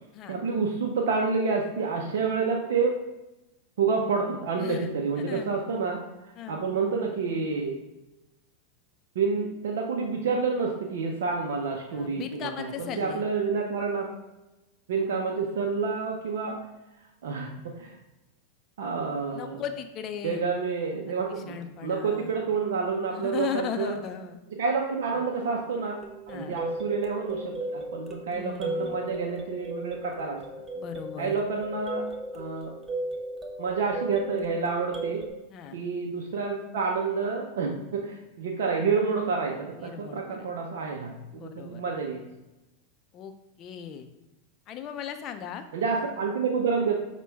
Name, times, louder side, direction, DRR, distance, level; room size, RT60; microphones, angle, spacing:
voice 1, 0.3-3.0 3.8-6.0 6.5-7.8 9.2-14.1 14.9-16.6 17.2-17.9 18.8-19.6 20.2-24.0 24.5-26.0 26.3-30.4 31.2-32.1 32.3-32.7 33.6-35.2 35.7-42.3 45.7-47.1, right 5 dB, 70° right, 0 dB, 0.5 m, -28 dB
voice 2, 11.9-13.2 19.3-20.4 21.3-22.4 23.1-24.4 25.1-25.2 26.3-26.6 28.3-29.0 30.7-31.3 35.5-35.8 39.8-40.5 41.3-41.8 43.1-44.0 44.7-45.6, left 9 dB, 40° left, 7 dB, 0.4 m, -37 dB
sound 1, 26.0-35.3, right 1 dB, 20° right, 0.6 m, -36 dB
5.8 x 2.2 x 3.4 m, 0.98 s
hypercardioid pair, 95°, 0 cm